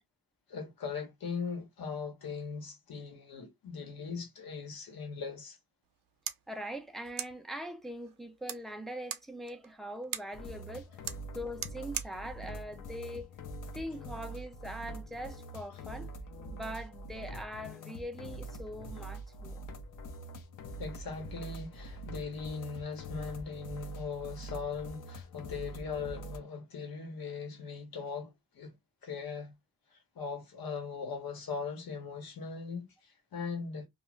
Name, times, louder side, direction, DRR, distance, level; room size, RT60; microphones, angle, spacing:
voice 1, 0.5-5.6 20.8-28.8 29.0-29.5 29.9-33.9, left 5 dB, 75° left, 1.0 m, -39 dB
sound 1, 5.8-13.9, right 10 dB, 70° right, 0.5 m, -45 dB
voice 2, 6.5-11.0 11.3-13.3 13.7-16.1 16.5-19.6, equal, ahead, 0.3 m, -42 dB
sound 2, 10.3-26.4, right 1 dB, 60° left, 0.6 m, -44 dB
2.4 x 2.3 x 3.0 m
wide cardioid pair, 145°, 36 cm